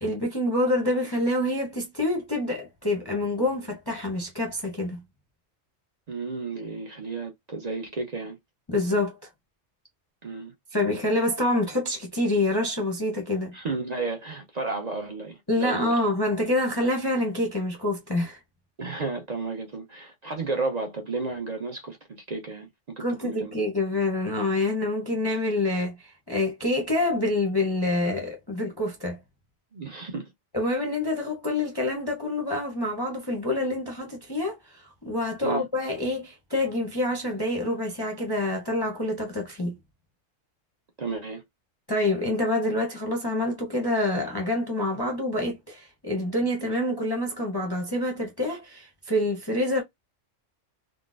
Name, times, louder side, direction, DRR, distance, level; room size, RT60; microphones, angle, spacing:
voice 1, 0.0-5.0 8.7-9.1 10.7-13.5 15.5-18.4 23.0-29.2 30.5-39.8 41.9-49.8, left 1 dB, 25° left, 0.6 m, -27 dB
voice 2, 6.1-8.4 10.2-10.5 13.5-16.0 18.8-23.5 29.7-30.3 35.4-35.6 41.0-41.4, right 3 dB, 40° right, 0.6 m, -33 dB
3.8 x 2.1 x 2.4 m
omnidirectional pair, 1.3 m